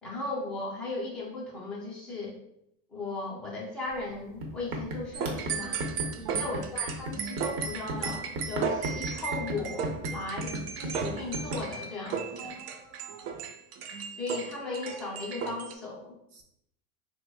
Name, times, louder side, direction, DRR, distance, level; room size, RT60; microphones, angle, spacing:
voice 1, 0.0-2.4 2.9-5.8 6.4-12.5 14.2-16.1, left 3 dB, ahead, -6 dB, 0.3 m, -37 dB
sound 1, 4.0-4.1 4.4-11.6, right 1 dB, 60° right, 0.9 m, -35 dB
sound 2, 5.1-15.7, right 6 dB, 85° right, 0.6 m, -35 dB
voice 2, 6.1-6.5 12.4-13.5 16.3-16.4, right 3 dB, 35° right, 2 dB, 0.6 m, -47 dB
3.2 x 2.0 x 3.5 m, 0.75 s
supercardioid pair, 145°, 45 cm